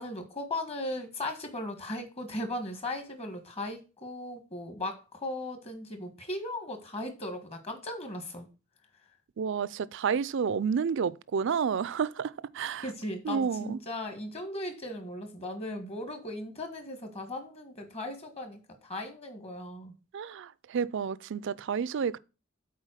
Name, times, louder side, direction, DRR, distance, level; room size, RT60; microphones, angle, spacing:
voice 1, 0.0-8.5 12.8-19.9, left 1 dB, 30° left, 1.6 m, -37 dB
voice 2, 9.4-12.9 13.2-13.8 20.1-22.2, right 6 dB, 60° right, 0.4 m, -30 dB
7.4 x 4.5 x 6.4 m
head